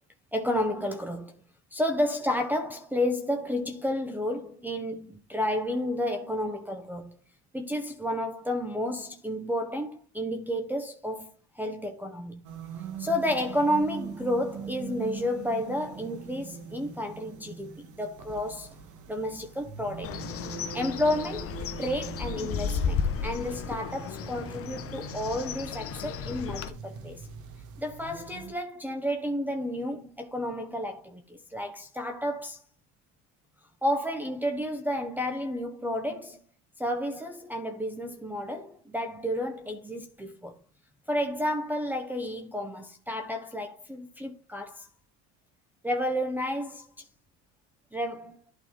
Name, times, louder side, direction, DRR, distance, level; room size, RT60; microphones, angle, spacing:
voice 1, 0.3-1.4 1.7-7.2 7.5-12.4 13.0-18.7 19.1-20.2 20.7-27.2 27.8-32.6 33.8-36.4 36.8-40.6 41.1-44.9 45.8-46.8 47.9-48.4, left 1 dB, 5° right, 0.9 m, -31 dB
sound 1, 12.4-28.5, right 6 dB, 50° right, 1.5 m, -42 dB
Bird, 20.0-26.7, left 7 dB, 35° left, 0.9 m, -34 dB
12.0 x 4.1 x 3.7 m
supercardioid pair, 105°, 37 cm